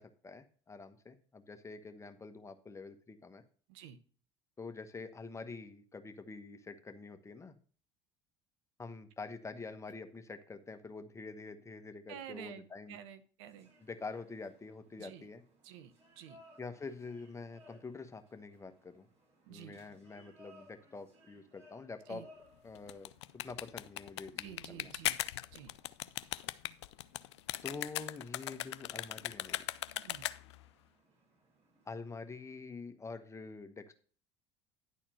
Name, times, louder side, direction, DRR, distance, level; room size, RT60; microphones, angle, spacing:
voice 1, 0.0-3.4 4.6-7.6 8.8-13.0 13.8-15.4 16.6-19.1 19.5-22.3 22.6-23.1 23.4-24.9 27.6-29.7 31.8-33.9, left 4 dB, 20° left, 8 dB, 1.1 m, -46 dB
voice 2, 12.1-13.7 15.0-15.2 15.6-16.4 19.5-19.8 22.1-22.3 24.4-25.2 25.5-25.7 30.0-30.3, right 10 dB, 70° right, 11 dB, 0.9 m, -50 dB
sound 1, 13.4-32.6, left 1 dB, 45° right, 4.7 m, -64 dB
sound 2, 22.7-30.6, left 15 dB, 80° left, 0.4 m, -39 dB
10.5 x 4.3 x 6.2 m, 0.42 s
hypercardioid pair, 75°, 15 cm